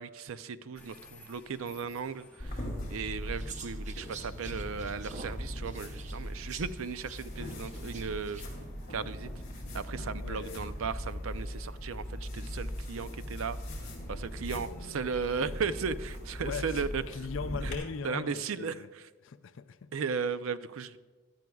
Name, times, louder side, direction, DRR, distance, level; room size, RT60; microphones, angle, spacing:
voice 1, 0.0-2.6 2.9-8.4 8.9-9.3 9.7-13.6 14.1-17.0 17.6-17.7 18.0-18.8 19.9-21.0, right 5 dB, 80° right, 0.5 m, -36 dB
sound 1, 0.7-18.5, left 2 dB, 5° left, 1.2 m, -60 dB
sound 2, 2.4-17.7, equal, 40° left, 2.9 m, -40 dB
sound 3, 3.4-8.7, right 4 dB, 35° right, 0.6 m, -49 dB
voice 2, 10.0-10.7 14.4-15.1 16.4-18.9 19.2-20.0, left 5 dB, 70° left, 0.4 m, -41 dB
17.0 x 12.0 x 2.3 m
head